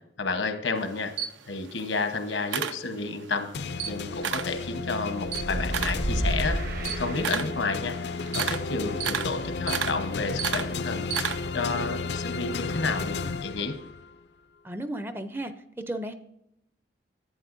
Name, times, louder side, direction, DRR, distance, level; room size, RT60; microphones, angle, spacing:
voice 1, 0.2-3.5 3.8-6.6 7.0-7.9 8.3-11.1 11.5-13.7, left 3 dB, 85° left, 7 dB, 1.1 m, -31 dB
Camera, 0.8-3.3 3.7-4.6 5.0-11.7, right 8 dB, 85° right, 0.5 m, -32 dB
sound 1, 3.5-14.1, left 4 dB, 65° left, 0.4 m, -33 dB
sound 2, 5.3-7.9, right 1 dB, 50° right, 0.9 m, -30 dB
voice 2, 14.6-15.5 15.9-16.1, right 1 dB, 10° right, 10 dB, 0.4 m, -33 dB
11.0 x 8.7 x 2.6 m, 0.81 s
head